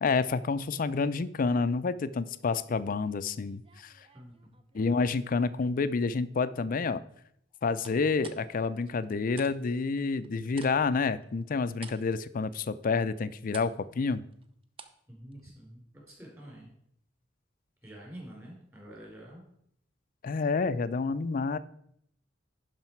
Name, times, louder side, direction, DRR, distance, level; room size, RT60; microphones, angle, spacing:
voice 1, 0.0-3.9 4.7-7.0 7.6-13.7 14.0-14.2 20.2-21.6, left 4 dB, 50° left, 15 dB, 0.4 m, -29 dB
sound 1, 3.4-5.1 5.6-6.0 7.8-9.5 9.8-15.1 15.3-15.4, right 5 dB, 30° right, 0.7 m, -51 dB
voice 2, 15.1-16.7 17.8-19.4, right 1 dB, 15° right, -2 dB, 3.8 m, -47 dB
11.5 x 5.1 x 4.5 m, 0.71 s
head